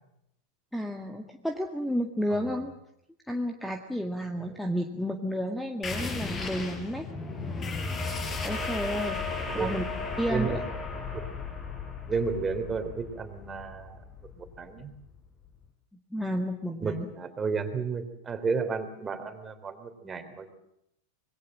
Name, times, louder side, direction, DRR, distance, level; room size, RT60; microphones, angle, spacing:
voice 1, 0.7-2.7 3.3-7.1 8.4-9.2 9.5-9.8 10.2-10.6 16.1-17.1, equal, ahead, 5 dB, 1.8 m, -31 dB
sound 1, 5.8-15.0, left 4 dB, 20° left, 5.3 m, -35 dB
voice 2, 9.5-9.8 10.3-10.6 11.1-11.3 12.1-14.0 14.3-14.9 16.8-20.5, right 5 dB, 20° right, 9 dB, 3.5 m, -32 dB
26.0 x 22.0 x 7.5 m, 0.79 s
figure-of-eight pair, 90°, 0 cm